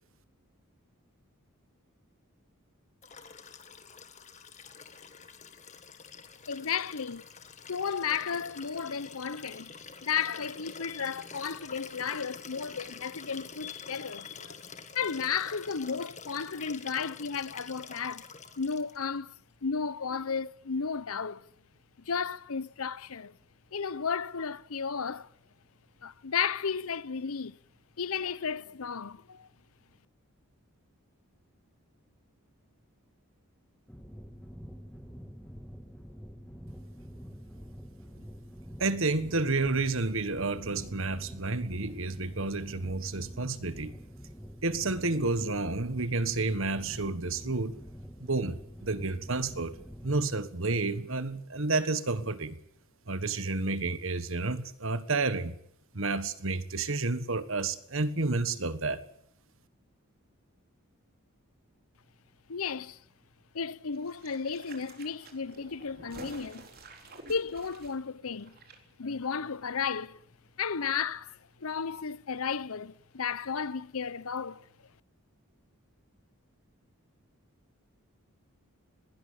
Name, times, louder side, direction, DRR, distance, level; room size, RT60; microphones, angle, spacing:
Liquid, 3.0-19.1 20.4-20.5, left 5 dB, 30° left, 1.6 m, -47 dB
voice 1, 6.5-7.2 7.7-9.7 10.0-14.6 14.9-18.3 18.6-19.3 19.6-21.5 22.1-23.3 23.7-25.3 26.0-27.6 28.0-29.5 62.5-63.0 63.5-66.7 67.3-68.6 69.0-70.2 70.6-74.6, left 6 dB, 75° left, 0.8 m, -33 dB
sound 1, 33.9-50.3, equal, 5° left, 2.2 m, -46 dB
voice 2, 38.8-43.9 44.6-47.7 48.2-49.8 50.0-52.5 53.1-55.6 55.9-59.0, right 3 dB, 60° right, 1.5 m, -30 dB
sound 2, 63.9-68.8 69.0-69.1, right 2 dB, 40° right, 3.8 m, -50 dB
20.5 x 17.0 x 8.7 m
head